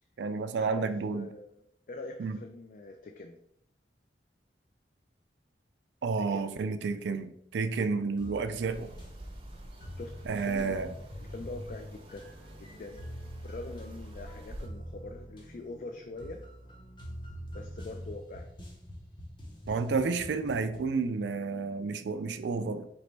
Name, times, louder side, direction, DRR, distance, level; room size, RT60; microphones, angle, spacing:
voice 1, 0.2-1.3 2.2-2.4 6.0-8.9 10.3-10.9 19.7-22.9, right 4 dB, 75° right, 0.4 m, -31 dB
voice 2, 1.1-1.6 1.9-3.4 6.2-6.8 10.0-10.8 11.1-12.3 12.6-13.0 13.4-16.4 17.5-18.5, left 2 dB, 45° left, 0.3 m, -43 dB
sound 1, 8.2-21.0, equal, 25° left, 0.7 m, -45 dB
sound 2, 8.7-14.7, right 1 dB, 30° right, 0.6 m, -48 dB
4.2 x 3.0 x 3.2 m
head